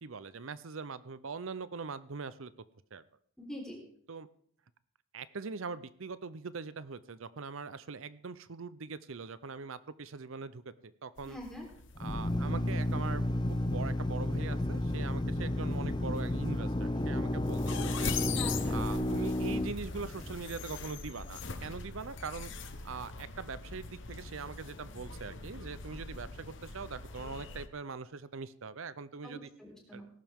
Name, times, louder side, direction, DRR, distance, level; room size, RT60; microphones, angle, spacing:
voice 1, 0.0-2.5 2.9-3.0 4.1-4.3 5.1-11.4 12.0-18.2 18.7-22.5 22.8-29.5 29.9-30.1, right 4 dB, 70° right, 16 dB, 0.7 m, -42 dB
voice 2, 3.4-3.8 11.2-11.7 18.3-18.8 29.2-30.1, left 1 dB, 5° left, -2 dB, 3.8 m, -44 dB
sound 1, 11.2-27.7, left 5 dB, 55° left, 1.1 m, -43 dB
Drill, 12.0-20.6, left 1 dB, 20° left, 0.7 m, -32 dB
18.5 x 11.5 x 3.7 m, 0.63 s
head